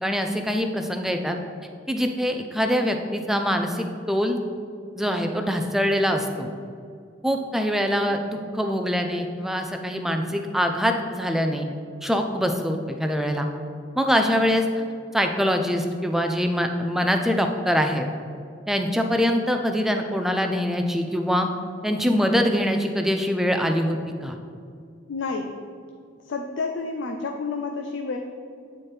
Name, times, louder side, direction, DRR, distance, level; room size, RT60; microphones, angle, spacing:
voice 1, 0.0-1.4 1.9-4.4 4.9-6.5 7.2-11.7 12.0-13.5 14.0-14.7 15.1-18.1 18.7-21.5 21.8-24.4, equal, ahead, 4 dB, 0.4 m, -24 dB
voice 2, 25.1-25.6 26.3-28.2, left 4 dB, 80° left, 4 dB, 0.4 m, -29 dB
9.3 x 4.3 x 3.2 m, 2.3 s
head